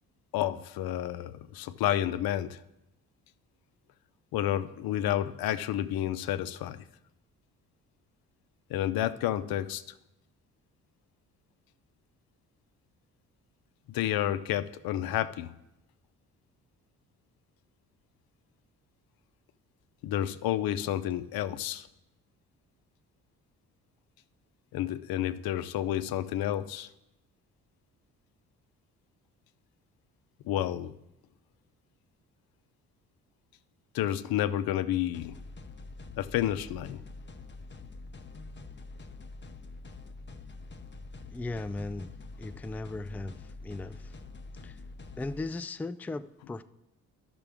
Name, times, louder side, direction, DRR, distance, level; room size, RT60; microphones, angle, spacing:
voice 1, 0.3-2.6 4.3-6.8 8.7-9.8 13.9-15.5 20.0-21.9 24.7-26.9 30.4-30.9 33.9-35.4 36.2-37.0, left 12 dB, 75° left, 0.6 m, -30 dB
sound 1, 35.1-45.4, left 3 dB, 30° left, 0.8 m, -46 dB
voice 2, 41.3-42.1 42.4-44.2 44.6-44.8 45.2-46.6, left 2 dB, 5° left, 0.3 m, -37 dB
12.5 x 6.0 x 3.5 m
supercardioid pair, 60°, 36 cm